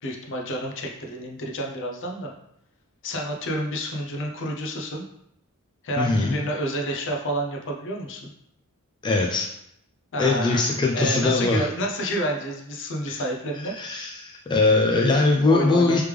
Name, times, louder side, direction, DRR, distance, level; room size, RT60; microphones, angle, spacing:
voice 1, 0.0-2.3 3.0-5.0 5.8-8.2 10.1-13.7 15.4-16.0, equal, 55° left, 1 dB, 0.6 m, -29 dB
voice 2, 6.0-6.3 9.0-9.5 10.2-11.6 13.1-13.2 13.7-16.0, left 3 dB, 20° left, -1 dB, 0.3 m, -21 dB
3.3 x 3.2 x 3.3 m, 0.77 s
head